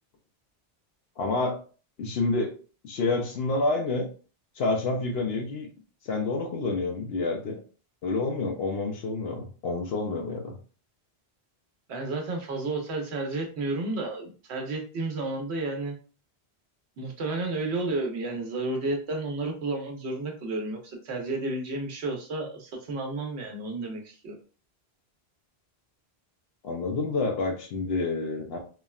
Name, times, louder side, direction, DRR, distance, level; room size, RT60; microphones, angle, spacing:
voice 1, 1.2-1.6 2.0-2.5 2.8-4.1 4.6-5.7 6.0-7.6 8.0-10.5 26.6-28.6, left 3 dB, 75° left, 2 dB, 0.8 m, -28 dB
voice 2, 11.9-16.0 17.0-24.4, right 2 dB, 90° right, 2 dB, 1.0 m, -32 dB
3.4 x 2.1 x 2.3 m, 0.38 s
omnidirectional pair, 1.1 m